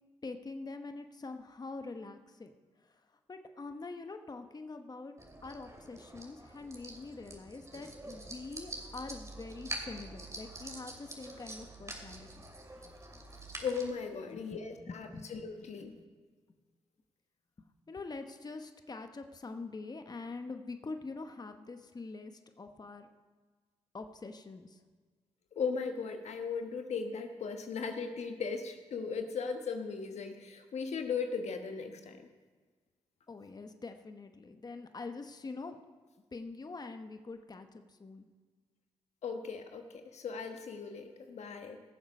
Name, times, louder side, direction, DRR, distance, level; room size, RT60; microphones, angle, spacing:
voice 1, 0.2-2.5 2.8-3.0 3.3-5.1 5.4-12.3 14.3-14.5 14.8-15.3 17.9-23.1 23.9-24.8 33.3-35.8 36.3-38.3, left 3 dB, 35° left, 7 dB, 1.0 m, -44 dB
sound 1, 5.2-13.9, right 2 dB, 25° right, 2.6 m, -46 dB
voice 2, 13.6-16.0 25.5-32.3 39.2-41.8, left 5 dB, 70° left, 6 dB, 1.2 m, -37 dB
17.5 x 7.3 x 5.2 m, 1.4 s
supercardioid pair, 50°, 12 cm